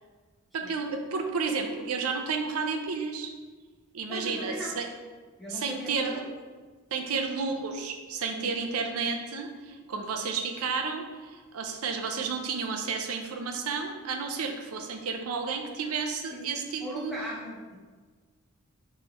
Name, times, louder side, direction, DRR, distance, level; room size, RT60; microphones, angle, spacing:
voice 1, 0.5-3.3 3.9-4.8 5.5-6.2 6.9-17.1, right 5 dB, 80° right, 5 dB, 0.6 m, -32 dB
voice 2, 4.1-4.8 5.4-6.2 7.0-7.2 8.3-8.5 16.3-16.5 16.8-17.8, equal, ahead, -7 dB, 1.1 m, -38 dB
5.4 x 3.2 x 3.0 m, 1.4 s
head